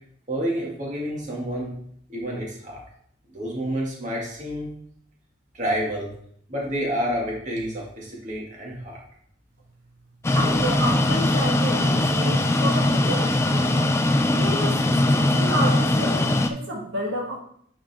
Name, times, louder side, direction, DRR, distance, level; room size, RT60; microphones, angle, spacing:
voice 1, 0.3-1.8 2.1-2.8 3.3-4.7 5.5-6.1 6.5-9.0, equal, 40° right, -3 dB, 1.9 m, -29 dB
sound 1, 10.2-16.5, left 1 dB, 15° left, 0.3 m, -21 dB
voice 2, 10.3-13.8 14.3-17.4, equal, 80° right, -2 dB, 1.5 m, -30 dB
8.8 x 5.1 x 3.5 m, 0.66 s
head